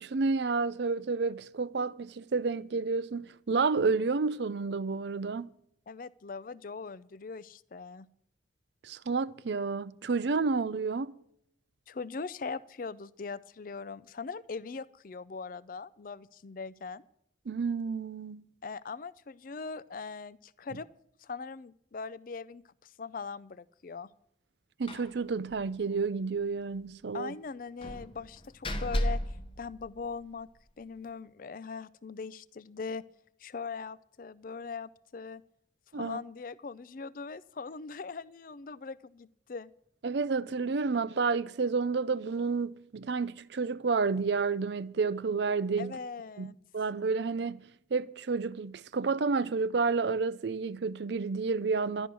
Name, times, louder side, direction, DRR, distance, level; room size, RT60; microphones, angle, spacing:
voice 1, 0.0-5.5 8.8-11.1 17.5-18.5 24.8-27.3 35.9-36.2 40.0-46.0 46.4-52.1, right 4 dB, 65° right, 0.5 m, -30 dB
voice 2, 5.9-8.1 11.9-17.0 18.6-20.9 21.2-24.1 27.1-30.5 30.8-33.0 33.4-35.4 35.9-39.7 45.8-46.6, left 4 dB, 45° left, 0.4 m, -41 dB
Slam, 24.9-25.2 25.5-25.6 25.9-26.0 27.8-30.4, equal, 30° left, 0.9 m, -34 dB
12.5 x 11.0 x 6.1 m
head